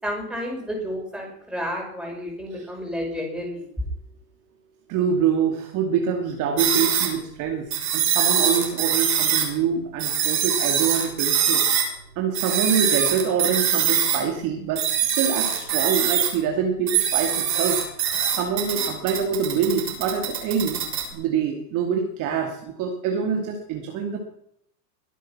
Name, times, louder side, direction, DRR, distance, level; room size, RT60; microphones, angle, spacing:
voice 1, 0.0-3.6, equal, ahead, 0 dB, 5.8 m, -31 dB
voice 2, 4.9-11.6 12.2-17.8 18.3-20.8 21.1-24.2, right 6 dB, 40° right, 2 dB, 2.5 m, -25 dB
sound 1, 6.6-7.1 7.7-9.5 10.0-11.9 12.3-14.2 14.8-16.4 16.9-21.0, right 9 dB, 85° right, 6.6 m, -23 dB
22.0 x 9.2 x 6.0 m, 0.72 s
supercardioid pair, 140°, 50 cm